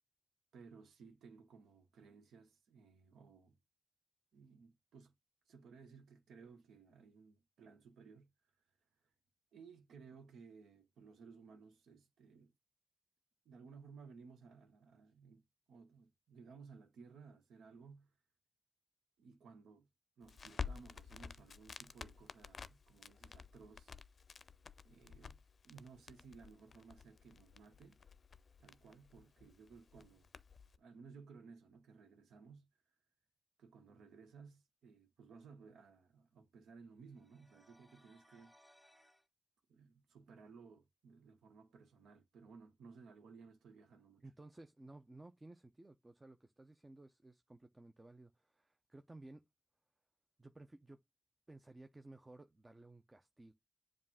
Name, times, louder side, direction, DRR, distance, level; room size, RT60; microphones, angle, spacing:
voice 1, 0.5-3.6 4.3-5.1 5.5-8.3 9.5-12.5 13.4-15.4 15.7-18.1 19.2-19.9 20.2-23.9 24.8-28.0 28.6-30.3 30.8-32.7 33.6-38.5 39.7-44.3, right 5 dB, 90° right, 0.9 m, -59 dB
Crackle, 20.2-30.8, left 6 dB, 60° left, 0.5 m, -51 dB
sound 1, 37.1-39.3, equal, 5° left, 1.4 m, -68 dB
voice 2, 44.2-49.4 50.4-51.0 51.5-53.5, right 2 dB, 25° right, 0.6 m, -57 dB
7.4 x 2.5 x 5.6 m
cardioid pair, 50°, 0 cm